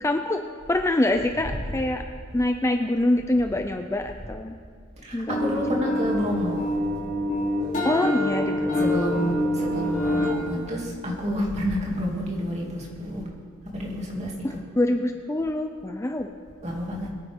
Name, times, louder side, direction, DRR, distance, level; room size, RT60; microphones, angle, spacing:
voice 1, 0.0-0.4 0.7-2.0 2.3-4.5 5.1-5.8 7.8-9.3 14.4-16.3, left 1 dB, 15° left, 5 dB, 0.5 m, -25 dB
voice 2, 5.0-6.7 8.8-13.2 13.7-14.3 16.6-17.1, equal, 35° right, -2 dB, 2.6 m, -29 dB
sound 1, 5.3-10.3, left 1 dB, 40° left, 3.2 m, -26 dB
22.5 x 9.7 x 3.6 m, 2.1 s
head